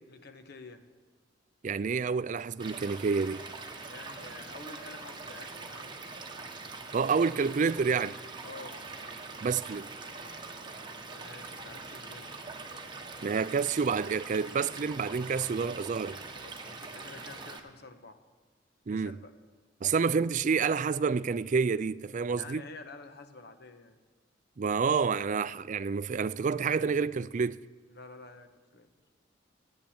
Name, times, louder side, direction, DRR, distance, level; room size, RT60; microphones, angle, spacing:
voice 1, 0.1-0.8 3.8-6.0 8.4-8.8 11.0-12.3 16.3-18.2 18.9-19.3 22.3-24.0 27.9-28.9, left 3 dB, 60° left, 1.2 m, -49 dB
voice 2, 1.6-3.4 6.9-8.2 9.4-9.9 13.2-16.2 18.9-19.2 19.8-22.6 24.6-27.6, right 5 dB, 40° right, 0.4 m, -28 dB
Stream / Liquid, 2.6-17.6, right 3 dB, 25° right, 1.2 m, -43 dB
14.5 x 9.1 x 8.7 m
head